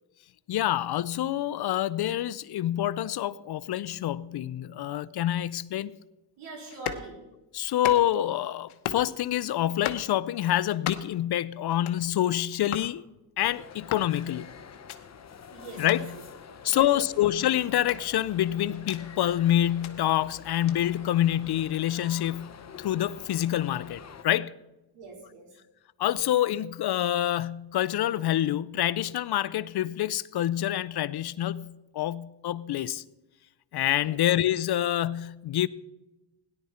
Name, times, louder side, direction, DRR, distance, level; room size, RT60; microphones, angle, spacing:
voice 1, 0.5-5.9 7.5-13.0 13.4-14.5 15.8-16.2 16.6-24.5 26.0-33.0 33.7-35.7, left 12 dB, 55° left, 0.5 m, -27 dB
voice 2, 6.4-7.2 15.5-16.2 16.5-17.2 24.9-25.5 34.0-34.2, right 4 dB, 85° right, 4.3 m, -43 dB
sound 1, 6.7-7.1 7.7-8.3 8.7-9.1 9.7-10.1 10.7-11.2 11.7-12.0 12.7-12.9 13.7-14.1 14.7-15.0 15.7-16.0 16.7-16.8 17.7-19.0 19.6-19.9 20.7-20.8, left 10 dB, 80° left, 1.1 m, -36 dB
sound 2, 13.4-24.2, left 7 dB, 35° left, 0.8 m, -47 dB
17.0 x 11.0 x 4.3 m
cardioid pair, 110°, 49 cm